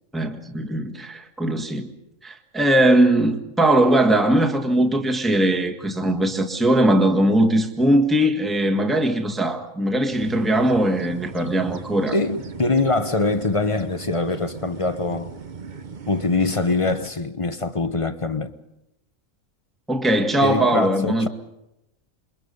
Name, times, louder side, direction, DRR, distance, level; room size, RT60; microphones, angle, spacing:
voice 1, 0.1-1.9 2.2-12.1 19.9-21.3, right 1 dB, ahead, 1.6 m, -20 dB
sound 1, 10.1-17.1, right 5 dB, 40° right, 0.9 m, -38 dB
voice 2, 12.1-15.3 16.1-18.5 20.4-21.3, left 3 dB, 25° left, 0.9 m, -23 dB
28.0 x 22.5 x 5.4 m
omnidirectional pair, 1.4 m